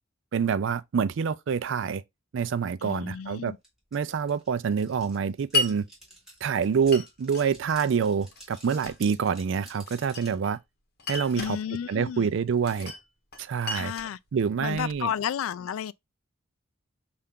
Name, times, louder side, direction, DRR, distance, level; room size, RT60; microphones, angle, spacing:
voice 1, 0.3-2.0 2.3-3.5 3.9-5.9 6.4-10.6 11.1-11.6 11.9-12.9 13.4-13.9 14.3-15.1, right 6 dB, 60° right, 0.4 m, -26 dB
voice 2, 2.8-3.6 11.4-12.3 13.7-14.2 14.6-15.9, left 8 dB, 75° left, 0.3 m, -32 dB
sound 1, 3.6-3.7 3.9-10.4, right 1 dB, ahead, 1.9 m, -51 dB
Glass, 5.5-5.8 6.9-7.5 8.3-9.0 9.9-10.6 11.0-11.6 12.6-13.0 13.3-15.0, left 3 dB, 50° left, 1.0 m, -33 dB
5.6 x 2.5 x 3.5 m
head